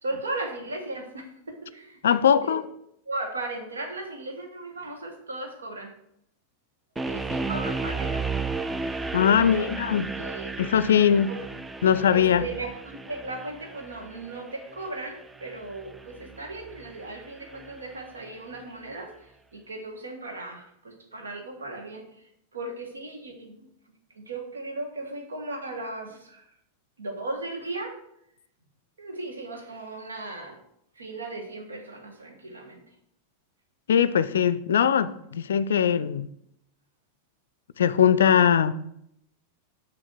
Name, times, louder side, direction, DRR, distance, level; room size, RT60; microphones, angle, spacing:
voice 1, 0.0-2.6 3.0-5.9 7.0-8.3 9.1-9.7 10.1-10.5 11.3-11.5 12.1-26.5 27.0-28.0 29.0-30.6 30.9-32.9, right 2 dB, 75° right, 4 dB, 1.5 m, -37 dB
voice 2, 2.0-2.6 9.1-10.1 10.6-11.3 11.8-12.4 33.9-36.3 37.8-38.7, left 8 dB, 65° left, 15 dB, 0.4 m, -21 dB
sound 1, 7.0-18.0, right 4 dB, 10° right, 0.4 m, -34 dB
6.3 x 6.0 x 6.1 m, 0.76 s
figure-of-eight pair, 90°, 0 cm